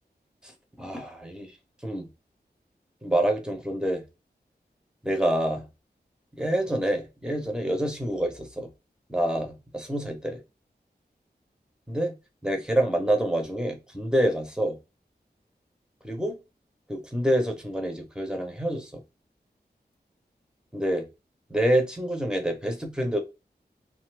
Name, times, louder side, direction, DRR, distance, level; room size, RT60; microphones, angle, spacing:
voice 1, 0.8-1.5 1.8-2.1 3.0-4.0 5.0-5.6 6.4-8.7 9.1-10.4 11.9-12.1 12.4-14.8 16.0-16.4 16.9-18.9 20.7-21.1 21.5-23.2, right 1 dB, 5° right, 0.9 m, -27 dB
2.6 x 2.5 x 3.2 m
wide cardioid pair, 75°, 18 cm